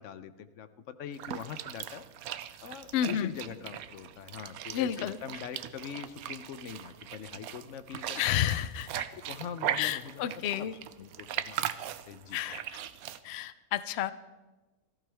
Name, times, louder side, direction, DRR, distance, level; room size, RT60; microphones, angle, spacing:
voice 1, 0.0-2.1 2.6-8.5 9.1-10.3 10.6-10.7 11.0-12.4, left 8 dB, 60° left, 12 dB, 0.9 m, -43 dB
sound 1, 1.1-13.2, right 11 dB, 75° right, 1.0 m, -39 dB
voice 2, 2.9-3.3 4.7-5.2 8.1-9.0 9.8-10.8 12.3-12.6 13.2-14.1, left 11 dB, 75° left, 14 dB, 0.6 m, -31 dB
17.5 x 14.5 x 3.4 m, 1.2 s
omnidirectional pair, 1.6 m